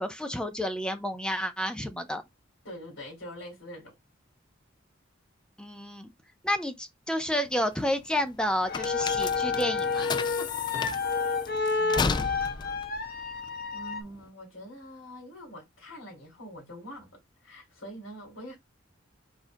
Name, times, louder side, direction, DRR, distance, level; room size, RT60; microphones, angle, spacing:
voice 1, 0.0-2.2 5.6-6.1 6.4-10.1, equal, 5° left, 0.7 m, -30 dB
voice 2, 2.6-4.0 11.7-13.4 13.7-17.1 17.4-18.6, equal, 70° left, 3.3 m, -45 dB
sound 1, 7.5-14.2, left 4 dB, 20° left, 0.3 m, -34 dB
sound 2, 8.6-14.0, left 5 dB, 50° left, 0.8 m, -30 dB
4.9 x 4.3 x 2.2 m
head